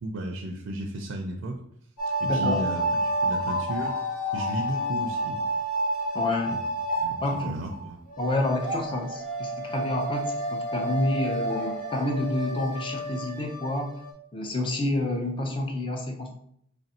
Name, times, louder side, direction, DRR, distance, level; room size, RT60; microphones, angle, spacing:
voice 1, 0.0-1.6 2.2-3.9 4.3-5.4 7.0-8.0, right 1 dB, 70° right, 1 dB, 0.5 m, -34 dB
sound 1, 2.0-7.8 8.1-14.1, right 1 dB, 45° left, 1.2 m, -30 dB
voice 2, 2.2-2.6 6.1-6.6 7.2-7.5 8.2-13.9 14.3-16.3, left 2 dB, 25° left, 3 dB, 0.6 m, -28 dB
3.4 x 2.5 x 4.1 m, 0.71 s
head